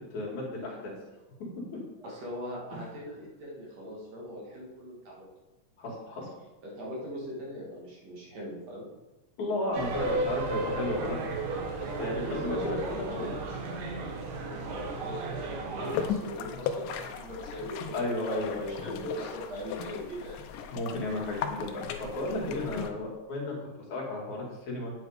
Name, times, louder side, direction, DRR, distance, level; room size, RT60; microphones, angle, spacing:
voice 1, 0.1-0.9 5.8-6.3 9.4-11.4 11.8-13.3 17.9-19.0 20.7-23.6 23.9-24.9, left 2 dB, 60° left, -3 dB, 3.5 m, -33 dB
voice 2, 2.0-5.3 6.6-8.9 12.2-13.4 14.4-18.3 18.8-20.4, equal, 55° right, -3 dB, 3.2 m, -40 dB
sound 1, 9.7-16.1, right 3 dB, 75° right, 3.0 m, -34 dB
sound 2, 15.8-22.9, left 7 dB, 75° left, 2.3 m, -37 dB
9.1 x 8.6 x 4.9 m, 1.1 s
omnidirectional pair, 3.9 m